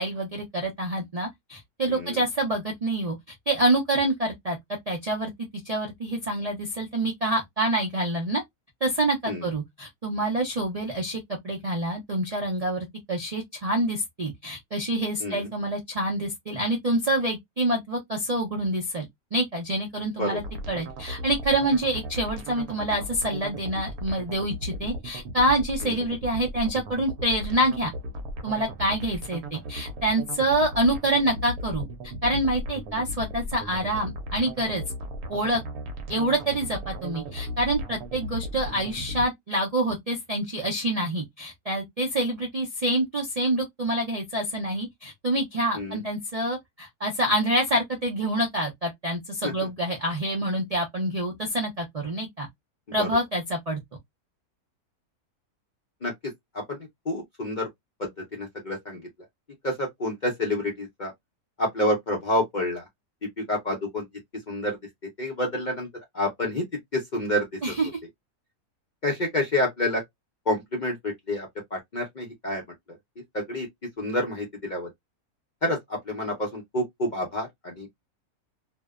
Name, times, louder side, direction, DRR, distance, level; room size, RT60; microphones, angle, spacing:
voice 1, 0.0-3.2 3.5-4.6 4.9-5.3 5.6-8.4 8.8-19.1 19.3-27.9 28.4-31.9 32.2-34.8 35.3-35.6 36.1-52.5 52.9-53.8 67.6-67.9, right 1 dB, 55° right, 0.4 m, -27 dB
voice 2, 1.9-2.2 9.3-9.4 15.2-15.5 20.2-20.4 25.8-25.9 45.7-46.0 49.4-49.5 53.0-53.1 56.0-56.8 57.1-57.7 58.0-59.0 59.6-61.1 61.6-62.8 63.5-64.0 64.5-64.8 65.2-65.9 66.1-66.6 66.9-67.5 69.0-70.0 70.5-72.6 73.3-73.7 74.0-74.9 75.6-77.9, left 1 dB, 50° left, 0.6 m, -28 dB
sound 1, 20.4-39.3, equal, 80° right, 1.1 m, -36 dB
2.6 x 2.1 x 2.3 m
omnidirectional pair, 1.6 m